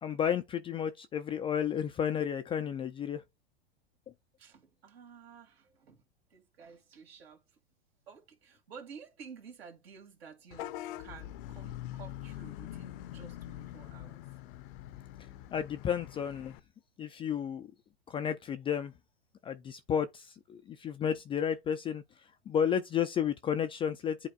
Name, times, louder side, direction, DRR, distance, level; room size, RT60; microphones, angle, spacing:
voice 1, 0.0-3.2 15.5-16.6 17.0-17.7 18.1-18.9 19.4-22.0 22.5-24.3, left 8 dB, 15° left, 0.3 m, -32 dB
voice 2, 4.4-6.0 6.3-7.6 8.1-14.2, right 6 dB, 70° right, 2.0 m, -52 dB
Vehicle horn car horn honking / Bus, 10.5-16.6, left 13 dB, 50° left, 0.6 m, -44 dB
10.0 x 4.1 x 2.3 m
hypercardioid pair, 95°, 32 cm